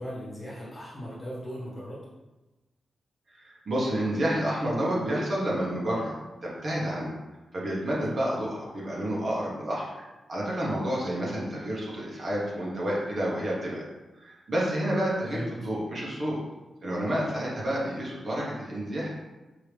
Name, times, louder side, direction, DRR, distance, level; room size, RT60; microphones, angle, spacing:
voice 1, 0.0-2.0 8.0-8.1 15.3-15.5, equal, 25° left, -8 dB, 1.5 m, -38 dB
voice 2, 3.3-6.1 6.4-7.1 7.5-9.9 10.3-13.8 14.1-16.4 16.8-19.1, right 1 dB, 40° right, -5 dB, 1.0 m, -29 dB
4.8 x 2.7 x 3.3 m, 1.1 s
wide cardioid pair, 180°, 0 cm